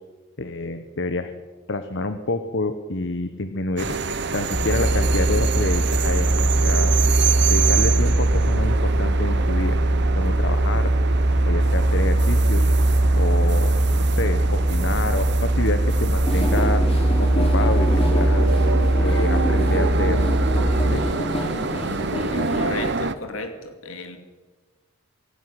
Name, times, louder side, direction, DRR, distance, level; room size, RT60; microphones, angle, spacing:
voice 1, 0.4-1.3 1.7-6.3 6.6-6.9 7.5-9.8 10.2-10.9 11.5-12.7 13.2-13.7 14.1-16.8 17.2-18.6 19.0-20.2 20.9-21.1, left 2 dB, 60° left, 10 dB, 1.1 m, -28 dB
sound 1, 3.8-23.1, right 5 dB, 55° right, 1.0 m, -28 dB
sound 2, 4.5-21.0, right 1 dB, 5° right, 2.6 m, -20 dB
sound 3, 16.2-22.9, equal, 30° left, 3.9 m, -28 dB
voice 2, 22.3-24.2, left 2 dB, 75° left, 6 dB, 2.5 m, -34 dB
25.0 x 11.0 x 9.8 m, 1.3 s
head